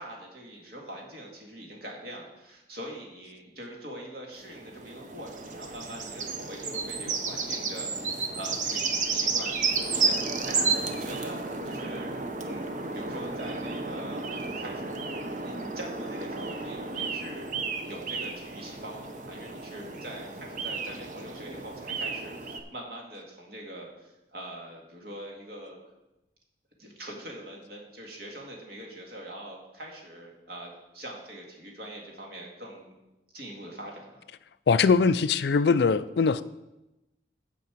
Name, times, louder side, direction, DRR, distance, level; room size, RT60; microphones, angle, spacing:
voice 1, 0.0-12.1 12.4-12.7 12.9-17.5 17.8-25.8 26.8-32.9 33.3-34.3, right 1 dB, 60° right, 2.0 m, -43 dB
sound 1, 4.4-22.6, right 4 dB, 45° right, 0.7 m, -32 dB
voice 2, 34.7-36.4, left 5 dB, 70° left, 0.4 m, -22 dB
8.3 x 5.3 x 7.4 m
head